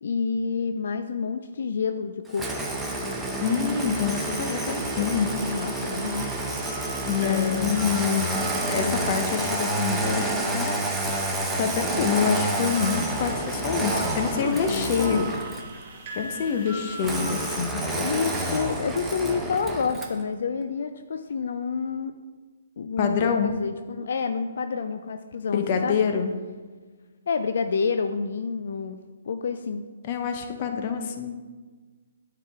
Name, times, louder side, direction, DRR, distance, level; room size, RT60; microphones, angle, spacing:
voice 1, 0.0-2.5 5.5-6.3 7.2-7.8 8.8-9.0 14.4-15.3 17.9-22.1 22.8-26.0 27.3-29.0 29.3-29.8, left 5 dB, 65° left, 8 dB, 0.4 m, -29 dB
Engine starting, 2.3-15.7 17.0-20.2, right 1 dB, 5° right, 0.7 m, -29 dB
voice 2, 3.4-5.3 7.0-8.3 8.7-10.8 11.6-15.3 16.2-17.8 23.0-23.5 25.5-26.3 30.0-31.4, left 7 dB, 40° left, 5 dB, 0.8 m, -26 dB
sound 1, 3.4-17.6, right 2 dB, 40° right, 2.0 m, -41 dB
9.1 x 4.8 x 3.5 m, 1.4 s
hypercardioid pair, 140°, 0 cm